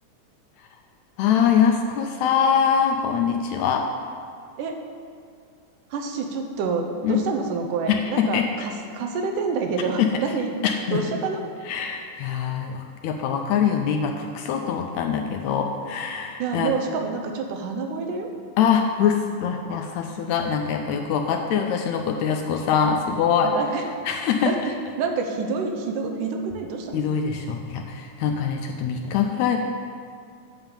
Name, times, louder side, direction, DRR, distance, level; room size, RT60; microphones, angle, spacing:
voice 1, 1.2-3.9 7.0-7.2 7.9-8.5 10.0-10.1 10.6-11.0 11.7-16.7 18.6-23.5 24.0-24.5 26.9-29.6, left 7 dB, 80° left, 4 dB, 1.7 m, -23 dB
voice 2, 5.9-10.5 10.9-11.4 16.4-18.3 23.4-23.8 24.5-27.0, right 4 dB, 85° right, 3 dB, 2.4 m, -28 dB
8.8 x 7.1 x 5.6 m, 2.3 s
omnidirectional pair, 3.6 m